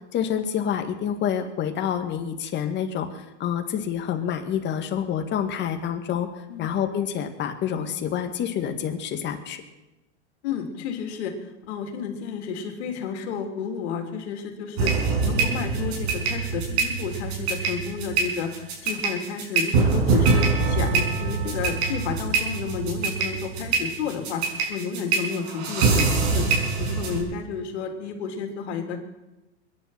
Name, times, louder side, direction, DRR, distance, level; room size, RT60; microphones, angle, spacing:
voice 1, 0.1-6.3 6.6-9.6, left 8 dB, 30° left, 6 dB, 2.0 m, -27 dB
voice 2, 10.4-29.0, left 6 dB, 65° left, 5 dB, 3.2 m, -31 dB
sound 1, 14.8-27.2, right 4 dB, 60° right, 5.7 m, -24 dB
22.5 x 10.5 x 5.8 m, 1.0 s
supercardioid pair, 130°, 35 cm